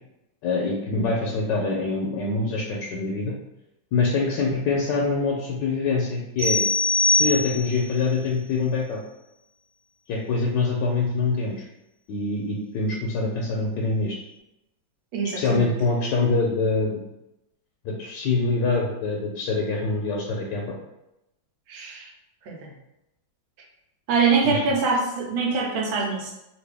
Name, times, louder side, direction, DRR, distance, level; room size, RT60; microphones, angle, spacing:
voice 1, 0.4-3.3 3.9-6.6 7.0-9.0 10.1-11.7 12.1-14.2 15.3-17.0 17.8-20.8 24.4-24.6, left 3 dB, 75° left, -2 dB, 1.1 m, -25 dB
sound 1, 6.4-7.9, left 2 dB, 60° right, 1.4 m, -22 dB
voice 2, 15.1-15.6 21.7-22.1 22.5-22.7 24.1-26.3, right 4 dB, 80° right, -1 dB, 1.5 m, -24 dB
3.2 x 2.5 x 3.4 m, 0.90 s
omnidirectional pair, 2.2 m